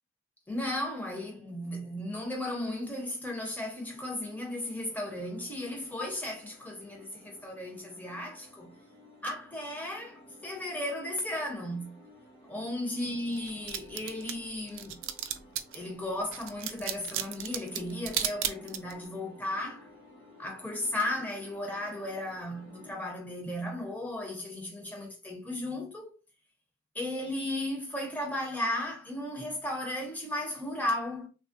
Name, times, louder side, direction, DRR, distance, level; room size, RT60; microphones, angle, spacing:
voice 1, 0.5-8.7 9.2-12.0 12.5-15.0 15.7-19.9 20.4-26.1 26.9-31.3, left 1 dB, 10° left, 0.6 m, -35 dB
sound 1, 3.9-22.9, left 1 dB, 50° left, 1.0 m, -55 dB
sound 2, 13.3-15.8 16.3-19.0, right 10 dB, 70° right, 0.3 m, -34 dB
3.4 x 2.0 x 2.5 m
head